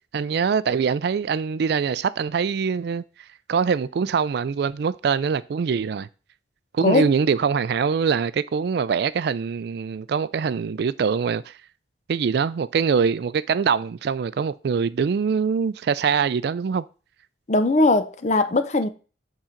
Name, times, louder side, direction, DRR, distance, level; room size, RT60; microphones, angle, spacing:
voice 1, 0.1-3.0 3.5-6.1 6.7-11.5 12.1-16.8, right 6 dB, 60° right, 0.3 m, -23 dB
voice 2, 17.5-18.9, left 2 dB, 40° left, 0.6 m, -20 dB
7.3 x 3.8 x 4.4 m
head